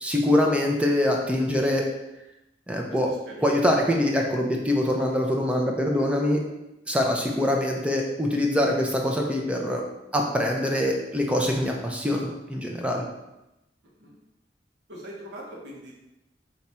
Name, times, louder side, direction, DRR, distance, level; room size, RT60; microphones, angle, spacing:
voice 1, 0.0-1.8 2.7-3.1 3.4-6.4 6.9-9.8 10.1-13.0, left 1 dB, 5° right, 0 dB, 0.5 m, -24 dB
voice 2, 2.9-3.5 14.0-14.1 14.9-16.0, right 1 dB, 70° right, -3 dB, 1.1 m, -42 dB
4.1 x 2.4 x 4.3 m, 0.93 s
head